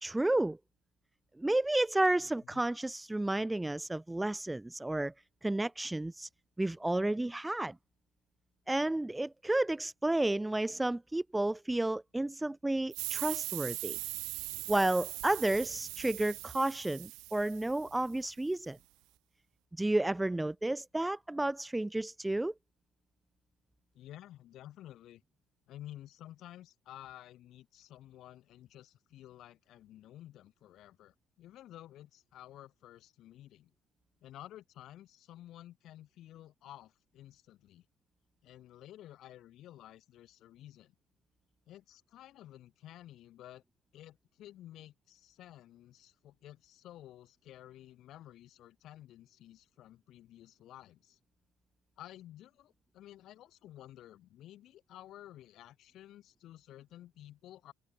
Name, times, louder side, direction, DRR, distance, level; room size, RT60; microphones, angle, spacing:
voice 1, 0.0-0.6 1.4-5.1 5.4-6.3 6.6-7.8 8.7-14.0 14.7-18.8 19.8-22.5, right 2 dB, 10° right, 0.6 m, -31 dB
voice 2, 2.2-2.6 23.9-25.2 25.7-33.7 34.2-37.9 38.4-40.9 41.7-43.6 43.9-51.2 52.0-57.7, left 13 dB, 55° left, 7.2 m, -52 dB
sound 1, 12.9-18.2, right 20 dB, 60° right, 0.5 m, -40 dB
figure-of-eight pair, 60°, 0 cm